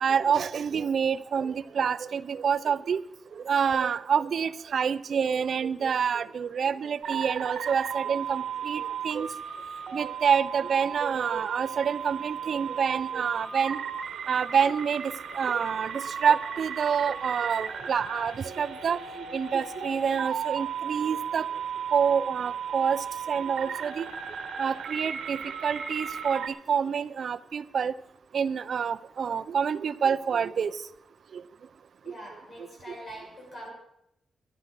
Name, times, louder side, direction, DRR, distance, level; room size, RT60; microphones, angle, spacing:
voice 1, 0.0-3.0 3.4-9.3 9.9-13.8 14.3-15.0 15.3-21.4 21.9-24.1 24.6-26.4 26.7-27.9 28.3-30.7, right 7 dB, 55° right, 14 dB, 0.5 m, -27 dB
sound 1, 7.0-26.5, right 7 dB, 75° right, 1.5 m, -35 dB
voice 2, 32.0-33.7, equal, 35° left, -2 dB, 5.5 m, -43 dB
14.0 x 10.0 x 6.1 m, 0.81 s
wide cardioid pair, 170°, 0 cm